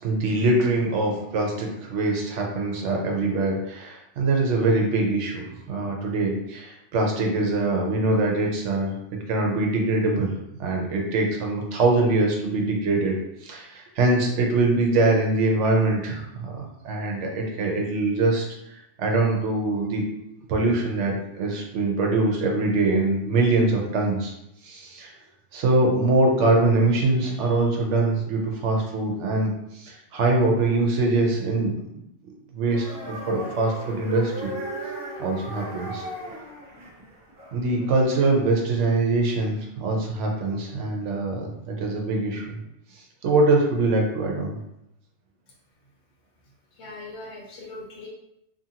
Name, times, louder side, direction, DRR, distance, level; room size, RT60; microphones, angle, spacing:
voice 1, 0.0-8.9 9.3-10.3 10.6-13.1 13.4-20.0 20.5-24.3 24.6-25.1 25.5-31.7 32.5-34.5 35.2-36.0 37.5-42.6 43.2-44.6, right 2 dB, 75° right, 0 dB, 1.0 m, -23 dB
sound 1, 32.7-37.9, right 1 dB, 50° right, 0.9 m, -36 dB
voice 2, 46.7-48.1, left 2 dB, 70° left, -4 dB, 1.1 m, -40 dB
2.7 x 2.6 x 2.7 m, 0.82 s
omnidirectional pair, 1.2 m